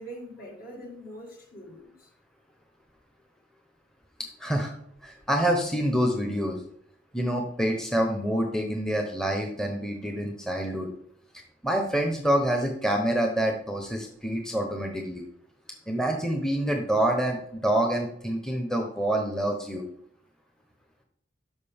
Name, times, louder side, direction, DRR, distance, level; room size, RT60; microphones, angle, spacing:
voice 1, 0.0-2.1, equal, 50° left, 1 dB, 1.8 m, -43 dB
voice 2, 4.2-4.7 5.0-6.6 7.1-10.9 11.6-15.2 15.9-19.9, right 1 dB, 5° left, 2 dB, 0.8 m, -27 dB
12.5 x 5.1 x 3.5 m, 0.68 s
head